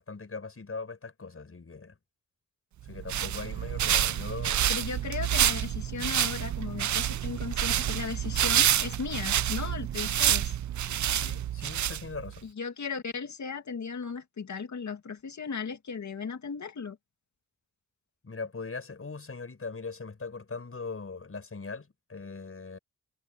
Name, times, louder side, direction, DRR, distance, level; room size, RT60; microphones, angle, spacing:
voice 1, 0.0-2.0 2.8-4.6 11.1-12.5 18.2-22.8, left 4 dB, 45° left, 6.1 m, -40 dB
sound 1, 2.9-12.4, right 11 dB, 65° right, 0.5 m, -28 dB
voice 2, 4.7-10.5 12.4-17.0, left 5 dB, 65° left, 2.5 m, -36 dB
cardioid pair, 70°, 32 cm